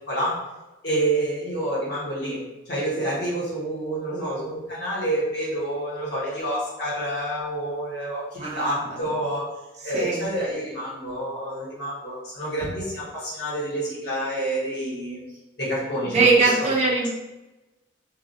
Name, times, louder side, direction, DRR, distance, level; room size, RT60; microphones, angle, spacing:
voice 1, 0.1-0.4 0.8-9.4 9.8-15.2 15.6-16.7, right 1 dB, 60° left, -7 dB, 1.2 m, -28 dB
voice 2, 8.4-8.8 9.9-10.2 16.0-17.1, right 3 dB, 35° right, -4 dB, 0.5 m, -21 dB
2.3 x 2.2 x 2.7 m, 1.0 s
head